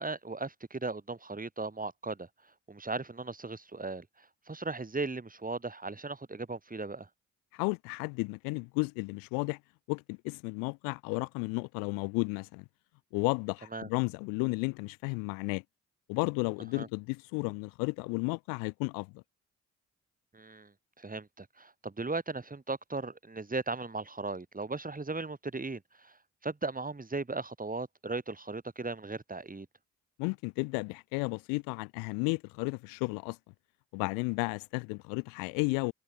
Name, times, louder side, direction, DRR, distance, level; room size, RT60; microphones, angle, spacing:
voice 1, 0.0-2.3 2.7-7.1 13.7-13.9 16.7-16.9 20.3-29.7, right 3 dB, 25° right, 6.3 m, -37 dB
voice 2, 7.5-9.6 9.9-12.6 13.1-15.6 16.1-19.2 30.2-33.4 33.9-35.9, left 32 dB, 90° left, 2.3 m, -33 dB
hypercardioid pair, 50°, 33 cm